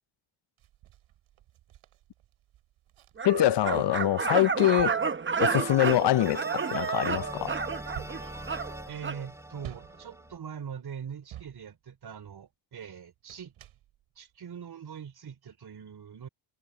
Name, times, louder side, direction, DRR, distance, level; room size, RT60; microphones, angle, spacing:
sound 1, 0.6-4.0 4.4-12.5 13.1-14.4 15.0-15.1, right 13 dB, 75° right, 5.3 m, -52 dB
voice 1, 3.2-4.9 5.4-6.4 6.7-7.6, left 13 dB, 55° left, 0.9 m, -24 dB
sound 2, 3.2-9.2, right 5 dB, 25° right, 1.2 m, -31 dB
sound 3, 5.4-10.4, right 1 dB, 5° right, 6.5 m, -43 dB
voice 2, 8.9-13.5 14.2-16.3, right 7 dB, 50° right, 3.4 m, -42 dB
supercardioid pair, 70°, 49 cm